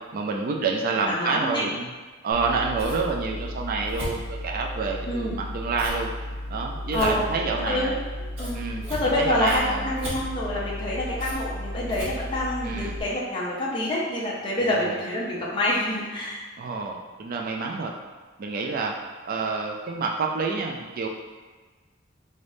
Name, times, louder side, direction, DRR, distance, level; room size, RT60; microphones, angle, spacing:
voice 1, 0.1-1.9 2.2-6.1 6.5-7.9 8.5-8.8 9.1-9.9 12.6-12.9 14.6-15.0 16.6-17.9 18.4-18.9 19.2-21.1, right 4 dB, 45° right, 1 dB, 0.3 m, -28 dB
voice 2, 1.1-1.6 5.1-5.4 6.9-7.2 7.7-7.9 8.4-8.6 8.9-16.4, left 1 dB, 25° left, -6 dB, 0.5 m, -27 dB
Scissors, 2.3-13.0, equal, 90° right, 1.3 m, -34 dB
3.9 x 3.4 x 2.6 m, 1.3 s
head